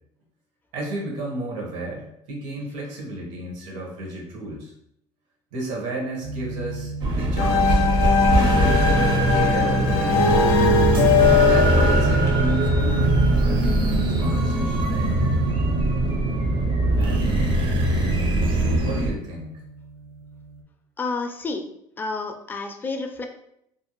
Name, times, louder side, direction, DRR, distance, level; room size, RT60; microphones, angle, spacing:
voice 1, 0.7-4.7 5.5-8.0 8.4-8.9 9.3-10.7 11.3-14.9 17.0-17.5 18.8-19.6, right 1 dB, 75° right, -1 dB, 0.9 m, -33 dB
sound 1, 6.2-20.6, right 3 dB, 90° right, 0.4 m, -37 dB
sound 2, 7.0-19.1, right 2 dB, 40° right, 0.5 m, -21 dB
sound 3, 7.4-13.1, left 4 dB, 90° left, 0.5 m, -20 dB
voice 2, 21.0-21.7 22.0-23.3, left 3 dB, 15° left, 4 dB, 0.3 m, -29 dB
2.5 x 2.1 x 3.0 m, 0.76 s
supercardioid pair, 110°, 12 cm